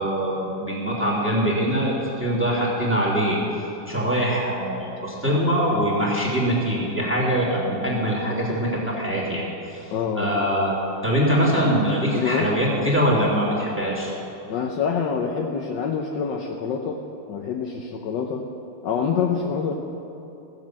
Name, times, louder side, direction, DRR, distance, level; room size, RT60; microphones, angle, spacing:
voice 1, 0.0-3.4 3.9-9.5 9.7-9.9 10.1-14.1, equal, 5° right, -4 dB, 2.9 m, -23 dB
voice 2, 9.9-10.4 12.1-12.5 14.5-17.0 17.3-18.4 18.8-19.7, left 6 dB, 70° left, 1 dB, 1.5 m, -26 dB
16.0 x 8.2 x 7.5 m, 2.9 s
omnidirectional pair, 2.1 m